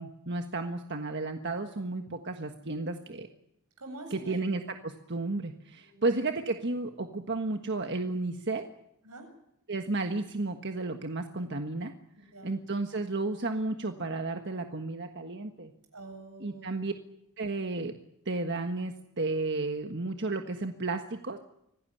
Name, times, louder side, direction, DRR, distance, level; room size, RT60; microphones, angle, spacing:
voice 1, 0.0-3.3 4.1-8.6 9.7-11.9 12.4-15.7 16.4-16.9 17.4-17.9 18.2-21.4, right 2 dB, 50° right, 5 dB, 1.5 m, -33 dB
voice 2, 3.8-4.4 5.8-6.1 9.0-9.3 12.2-12.6 15.9-16.9, right 2 dB, 85° right, 5 dB, 7.9 m, -46 dB
25.5 x 18.0 x 10.0 m, 0.81 s
head